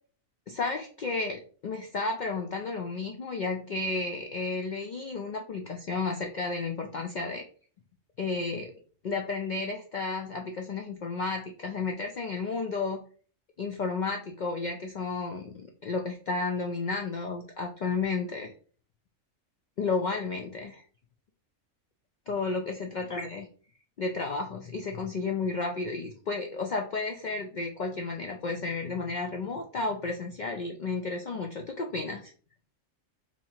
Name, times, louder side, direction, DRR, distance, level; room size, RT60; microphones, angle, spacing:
voice 1, 0.5-7.4 8.2-8.7 9.0-13.0 13.6-18.5 19.8-20.8 22.3-23.5 24.0-32.3, left 3 dB, 85° left, 3 dB, 0.4 m, -32 dB
2.9 x 2.8 x 4.3 m, 0.43 s
omnidirectional pair, 1.3 m